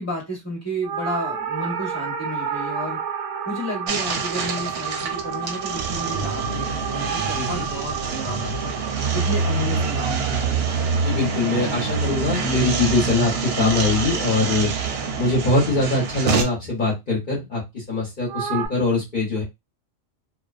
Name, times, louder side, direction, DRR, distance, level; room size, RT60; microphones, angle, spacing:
voice 1, 0.0-3.0 3.5-8.7 9.1-10.6, equal, 15° left, 1.2 m, -32 dB
sound 1, 0.8-11.3 18.3-18.7, right 7 dB, 90° right, 0.9 m, -31 dB
sound 2, 3.9-16.4, right 5 dB, 65° right, 0.7 m, -26 dB
voice 2, 7.3-7.7 11.0-14.7 15.2-19.4, left 2 dB, 45° left, 1.1 m, -22 dB
2.5 x 2.1 x 2.4 m
omnidirectional pair, 1.3 m